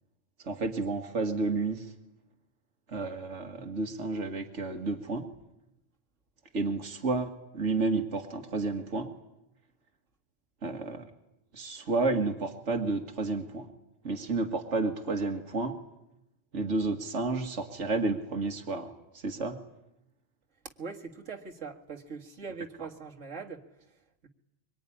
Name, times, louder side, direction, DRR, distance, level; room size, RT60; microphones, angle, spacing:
voice 1, 0.4-1.9 2.9-5.3 6.5-9.1 10.6-11.0 11.5-13.7 14.0-15.8 16.5-18.9 19.2-19.6, right 3 dB, 75° right, 4 dB, 2.1 m, -31 dB
voice 2, 20.8-23.6, right 5 dB, 90° right, 1 dB, 2.3 m, -41 dB
24.0 x 23.0 x 10.0 m, 0.85 s
omnidirectional pair, 1.2 m